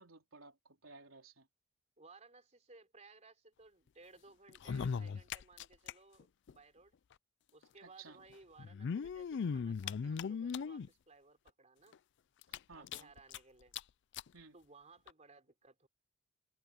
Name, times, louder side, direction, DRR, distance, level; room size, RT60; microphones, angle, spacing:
voice 1, 0.0-1.5 7.8-8.2 12.7-13.1 14.3-14.6, right 4 dB, 80° right, 3.9 m, -56 dB
voice 2, 2.0-7.0 7.5-12.0 12.7-13.7 14.5-15.9, right 3 dB, 35° right, 3.9 m, -60 dB
sound 1, 4.5-5.9 6.2-6.3 6.5-6.6 7.6-7.7 8.6-10.9 11.5-11.6 11.9-12.0 12.4-13.4 13.7-13.8 14.1-14.3 15.1-15.2, left 6 dB, 60° left, 0.4 m, -38 dB
head